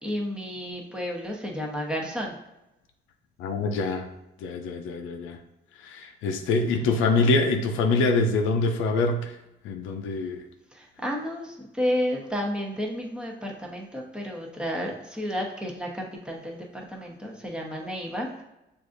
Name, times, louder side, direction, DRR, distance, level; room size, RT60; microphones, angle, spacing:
voice 1, 0.0-2.4 10.7-18.4, equal, 5° right, -1 dB, 0.9 m, -31 dB
voice 2, 3.4-4.1 4.4-5.4 5.8-9.4 9.6-10.4, left 3 dB, 90° left, 5 dB, 0.5 m, -25 dB
6.3 x 2.5 x 2.5 m, 0.94 s
cardioid pair, 90°, 20 cm